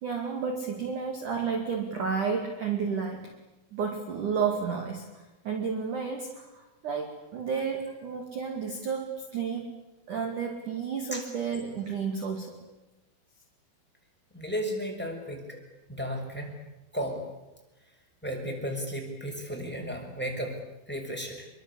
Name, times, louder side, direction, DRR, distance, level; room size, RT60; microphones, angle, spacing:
voice 1, 0.0-3.3 3.7-9.7 10.1-12.6, right 6 dB, 45° right, 4 dB, 3.3 m, -31 dB
voice 2, 14.3-15.6 15.9-16.6 16.9-17.2 18.2-21.5, equal, ahead, 2 dB, 5.9 m, -34 dB
28.0 x 23.5 x 8.5 m, 1.0 s
omnidirectional pair, 5.8 m